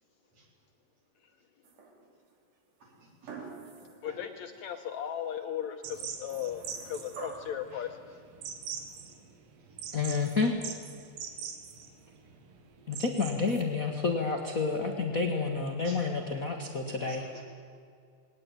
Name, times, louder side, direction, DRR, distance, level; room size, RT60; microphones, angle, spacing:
sound 1, 1.6-2.3 3.3-4.1 4.6-4.7 6.3-7.7 8.8-8.9, right 4 dB, 65° right, 4.1 m, -45 dB
voice 1, 2.8-3.5 4.0-4.2 7.7-7.8 8.9-9.0 15.8-16.1 17.0-17.4, right 2 dB, 50° right, 0 dB, 4.9 m, -51 dB
voice 2, 4.0-8.0, left 9 dB, 70° left, 6 dB, 2.0 m, -37 dB
sound 2, 5.8-13.6, right 7 dB, 85° right, 3.3 m, -43 dB
voice 3, 9.9-10.5 12.9-17.3, left 4 dB, 40° left, 3 dB, 1.2 m, -29 dB
20.5 x 18.5 x 9.2 m, 2.2 s
omnidirectional pair, 3.9 m